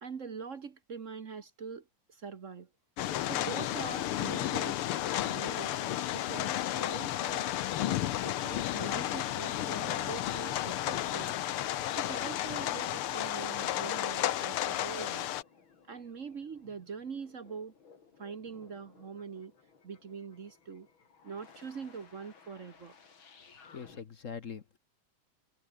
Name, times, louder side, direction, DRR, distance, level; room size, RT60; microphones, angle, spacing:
voice 1, 0.0-2.7 3.2-4.8 5.2-7.5 8.2-11.4 11.9-15.3 15.9-17.7 18.2-19.5 19.8-20.9 21.2-22.9, right 5 dB, 45° right, 1.3 m, -43 dB
sound 1, 3.0-15.4, left 13 dB, 80° left, 1.8 m, -33 dB
sound 2, 10.0-24.0, left 5 dB, 65° left, 3.5 m, -56 dB
voice 2, 23.5-24.8, left 6 dB, 45° left, 1.2 m, -43 dB
omnidirectional pair, 2.4 m